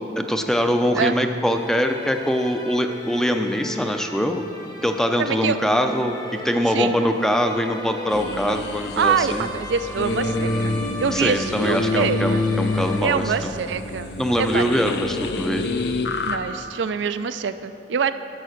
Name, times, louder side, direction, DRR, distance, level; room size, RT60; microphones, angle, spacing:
voice 1, 0.2-4.5 4.8-9.5 11.1-13.5 14.2-15.7, equal, 5° left, 5 dB, 0.4 m, -23 dB
sound 1, 1.4-13.5, left 1 dB, 20° left, 1.0 m, -37 dB
voice 2, 5.2-5.6 6.7-7.0 9.0-10.7 11.0-12.4 13.0-14.1 14.4-14.7 16.2-18.1, right 6 dB, 80° right, 11 dB, 0.4 m, -24 dB
sound 2, 8.1-16.4, left 2 dB, 65° left, 0.6 m, -27 dB
11.0 x 6.6 x 6.4 m, 2.8 s
head